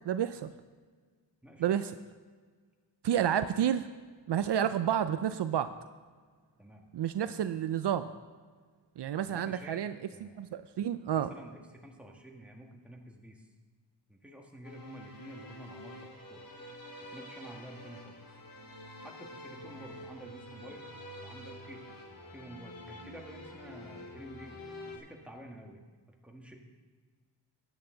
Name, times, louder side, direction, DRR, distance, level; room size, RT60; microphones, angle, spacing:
voice 1, 0.1-0.5 1.6-2.0 3.0-3.9 4.3-5.7 6.9-8.1 9.0-9.9 10.2-11.3, right 9 dB, 70° right, 11 dB, 0.5 m, -30 dB
voice 2, 9.2-9.8 10.1-10.4 11.1-13.5 14.1-16.5 17.0-18.2 19.0-20.9 21.2-21.9 22.3-25.8 26.2-26.6, right 1 dB, 5° right, 0 dB, 1.7 m, -50 dB
sound 1, 14.6-25.0, left 1 dB, 50° left, 1.9 m, -48 dB
12.5 x 9.1 x 3.9 m, 1.5 s
cardioid pair, 70°, 43 cm